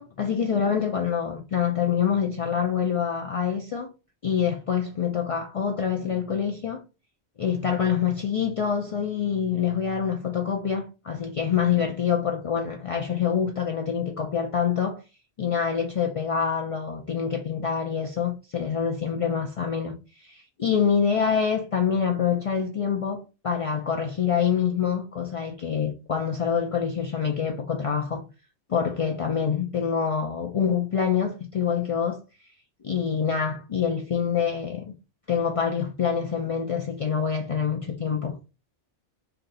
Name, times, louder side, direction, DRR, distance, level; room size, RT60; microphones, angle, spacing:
voice 1, 0.0-3.9 4.2-6.8 7.4-15.0 15.4-28.2 28.7-32.2 32.8-34.9 35.3-38.4, left 7 dB, 55° left, 0.3 m, -26 dB
3.3 x 2.7 x 4.1 m
omnidirectional pair, 1.2 m